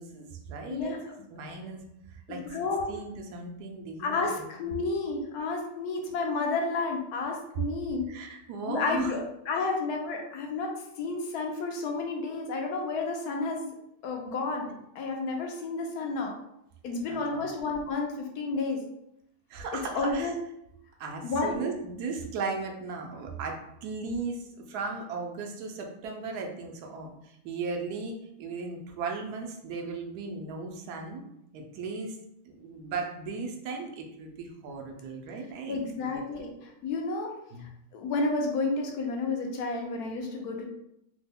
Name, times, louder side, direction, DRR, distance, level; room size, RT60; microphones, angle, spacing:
voice 1, 0.0-1.8 2.1-4.7 8.1-9.1 9.5-9.6 17.1-17.6 19.5-20.3 21.0-31.2 31.5-32.2 32.4-36.5 37.5-37.7, right 4 dB, 90° right, 2 dB, 1.1 m, -37 dB
voice 2, 2.3-2.9 4.0-8.1 8.6-13.7 14.0-16.3 16.8-18.8 19.9-20.3 21.2-21.6 35.7-36.5 36.8-37.3 37.9-40.6, left 3 dB, 80° left, 1 dB, 1.2 m, -31 dB
3.2 x 2.1 x 3.4 m, 0.80 s
omnidirectional pair, 1.6 m